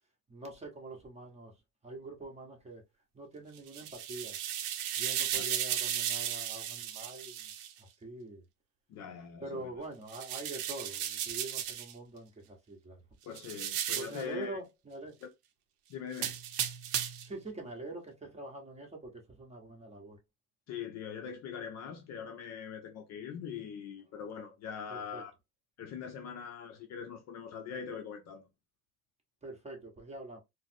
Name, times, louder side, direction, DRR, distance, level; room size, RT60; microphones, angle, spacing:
voice 1, 0.3-1.6 1.8-2.8 3.1-4.4 5.0-7.5 7.8-8.4 9.4-13.0 13.9-15.2 17.2-20.2 24.9-25.2 29.4-30.4, right 2 dB, 15° right, 1.0 m, -44 dB
sound 1, 3.6-7.7 10.1-11.9 13.4-14.2 16.1-17.3, right 10 dB, 65° right, 0.7 m, -35 dB
voice 2, 8.9-9.7 13.2-14.6 15.2-15.3 15.9-16.4 20.7-25.3 25.8-28.5, left 7 dB, 40° left, 0.6 m, -42 dB
3.9 x 2.1 x 2.6 m
supercardioid pair, 110°, 43 cm